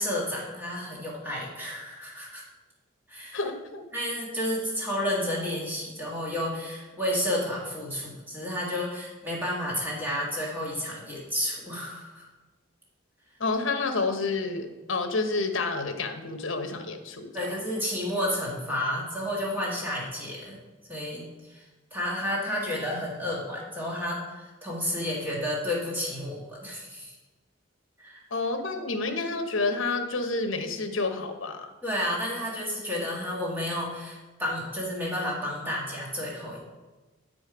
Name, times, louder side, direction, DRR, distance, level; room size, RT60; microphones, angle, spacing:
voice 1, 0.0-2.4 3.1-3.4 3.9-12.2 17.3-20.6 20.9-21.6 21.9-27.1 28.0-28.2 31.8-36.6, left 1 dB, 10° right, -5 dB, 1.7 m, -31 dB
voice 2, 3.3-3.8 13.4-17.4 28.3-31.7, left 3 dB, 75° left, 6 dB, 1.0 m, -29 dB
9.1 x 5.1 x 5.0 m, 1.2 s
head